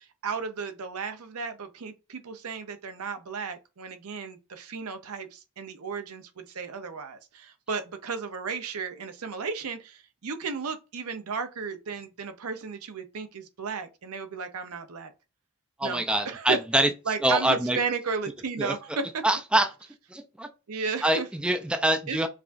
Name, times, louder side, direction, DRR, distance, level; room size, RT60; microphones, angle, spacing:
voice 1, 0.0-15.1 15.8-16.6 17.1-19.2 20.7-21.3 22.1-22.3, right 5 dB, 85° right, 0.6 m, -34 dB
voice 2, 15.8-16.9 17.2-17.8 18.6-18.7 19.2-19.7 20.1-20.5 21.0-22.3, right 1 dB, 5° right, 0.3 m, -24 dB
4.8 x 2.3 x 2.5 m
head